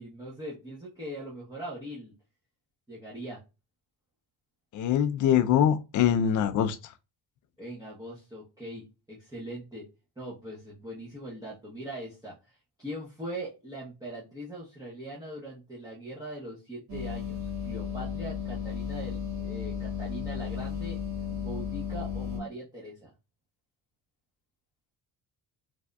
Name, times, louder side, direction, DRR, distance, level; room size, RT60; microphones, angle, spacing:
voice 1, 0.0-2.1 2.9-3.4 7.6-9.9 10.2-21.0 21.4-23.1, right 1 dB, 10° right, 0.9 m, -41 dB
voice 2, 4.7-6.8, left 9 dB, 50° left, 0.5 m, -23 dB
sound 1, 16.9-22.4, left 7 dB, 60° right, 1.6 m, -34 dB
3.4 x 2.5 x 2.2 m
cardioid pair, 95°, 42 cm